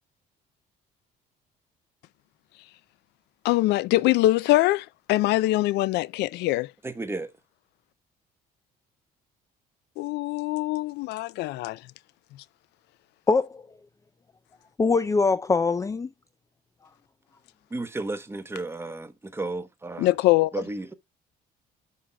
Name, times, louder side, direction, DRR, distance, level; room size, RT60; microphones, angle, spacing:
voice 1, 3.4-6.7 10.0-11.8 20.0-20.5, left 17 dB, 80° left, 0.5 m, -23 dB
voice 2, 6.8-7.3 17.7-20.1 20.5-20.9, right 2 dB, 15° right, 1.1 m, -33 dB
voice 3, 13.3-13.6 14.8-16.1, left 4 dB, 20° left, 0.5 m, -22 dB
11.0 x 5.6 x 2.3 m
cardioid pair, 110°, 17 cm